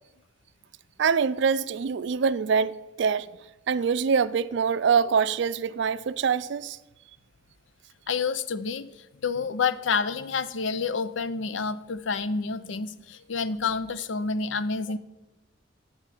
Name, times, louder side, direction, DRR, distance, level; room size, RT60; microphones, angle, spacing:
voice 1, 1.0-3.3 3.7-6.8, right 6 dB, 65° right, 0.4 m, -24 dB
voice 2, 8.1-9.0 9.2-15.0, left 5 dB, 75° left, 0.6 m, -28 dB
12.0 x 4.5 x 8.4 m
head